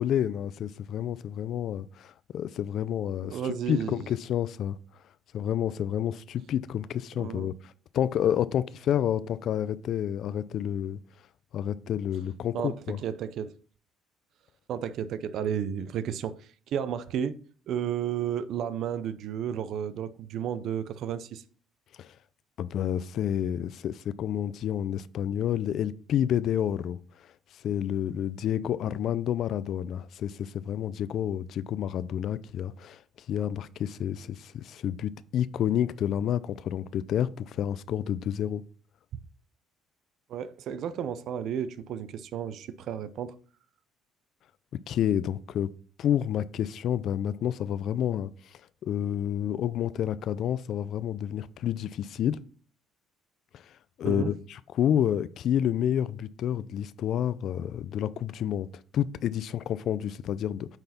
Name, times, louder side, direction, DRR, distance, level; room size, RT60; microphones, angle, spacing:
voice 1, 0.0-4.8 5.3-11.0 11.5-13.0 22.0-22.1 22.6-27.0 27.6-33.0 33.3-38.6 44.9-45.7 46.0-48.3 48.8-52.4 53.5-53.6 54.0-58.7 58.9-60.8, left 10 dB, 60° left, 0.4 m, -29 dB
voice 2, 3.3-4.1 7.2-7.5 12.5-13.5 14.7-16.4 16.7-17.4 17.7-21.4 40.3-43.4 54.0-54.3, right 9 dB, 65° right, 0.6 m, -32 dB
8.9 x 4.0 x 4.3 m
cardioid pair, 95°, 0 cm